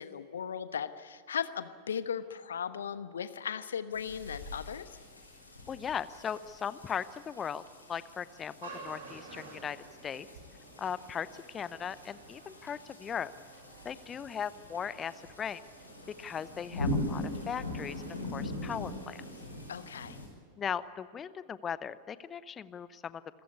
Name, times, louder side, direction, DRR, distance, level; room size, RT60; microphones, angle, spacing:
voice 1, 0.0-5.0 19.7-20.2, left 7 dB, 65° left, 12 dB, 1.1 m, -37 dB
sound 1, 3.9-20.3, left 1 dB, 80° left, 5.2 m, -42 dB
voice 2, 5.7-7.6 7.9-10.3 10.8-13.3 13.8-15.6 16.2-18.0 18.3-19.2 20.6-23.2, left 7 dB, 25° left, 16 dB, 0.8 m, -38 dB
sound 2, 8.6-19.9, right 3 dB, 65° right, 4.9 m, -53 dB
27.0 x 15.0 x 8.5 m, 2.2 s
figure-of-eight pair, 90°, 0 cm